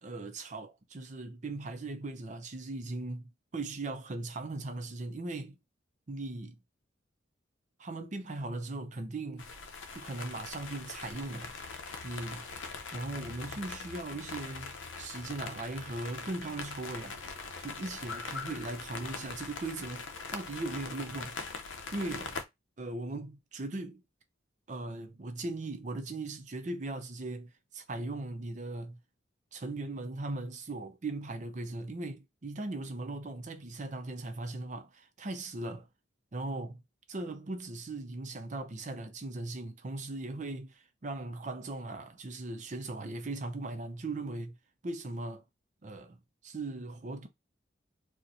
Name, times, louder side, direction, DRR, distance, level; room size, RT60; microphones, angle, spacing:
voice 1, 0.0-5.6 6.1-6.6 7.8-9.5 9.9-11.5 12.0-12.5 12.9-17.2 17.6-21.4 21.9-22.4 22.8-24.0 24.7-29.0 29.5-35.9 36.3-36.8 37.1-44.6 44.8-45.4 45.8-46.2 46.4-47.3, right 2 dB, 40° right, 0.5 m, -39 dB
sound 1, 9.4-22.4, left 4 dB, 80° left, 0.6 m, -42 dB
4.3 x 2.1 x 2.6 m
head